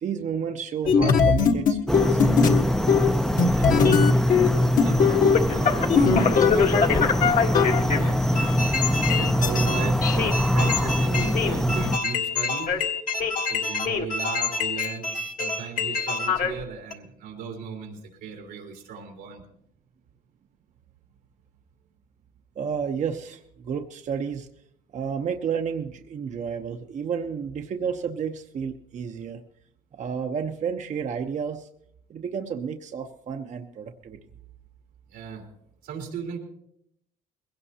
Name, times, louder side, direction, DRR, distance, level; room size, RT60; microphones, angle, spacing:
voice 1, 0.0-2.6 22.6-24.5 24.9-29.4 29.9-31.7 32.1-34.2, right 7 dB, 45° right, 5 dB, 0.9 m, -31 dB
sound 1, 0.9-2.6 2.9-3.1 3.4-4.5 4.8-16.6 16.9-17.0, left 5 dB, 55° left, 1.5 m, -22 dB
sound 2, 1.9-12.0, equal, 5° left, 0.6 m, -23 dB
voice 2, 4.5-6.7 7.1-8.8 9.2-12.8 13.5-19.4 35.1-35.4 35.8-36.4, right 6 dB, 90° right, 0 dB, 3.2 m, -37 dB
21.0 x 17.0 x 2.9 m, 0.73 s
cardioid pair, 110°, 17 cm